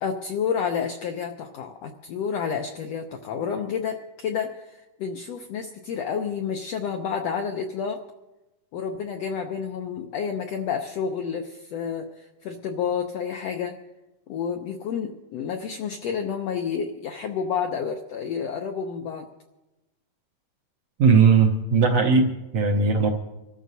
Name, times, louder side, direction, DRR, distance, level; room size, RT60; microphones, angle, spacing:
voice 1, 0.0-8.0 8.7-13.8 14.3-19.2, left 7 dB, 80° left, 4 dB, 1.5 m, -30 dB
voice 2, 21.0-23.1, right 5 dB, 70° right, 2 dB, 1.7 m, -18 dB
26.5 x 14.0 x 2.7 m, 1.0 s
omnidirectional pair, 3.8 m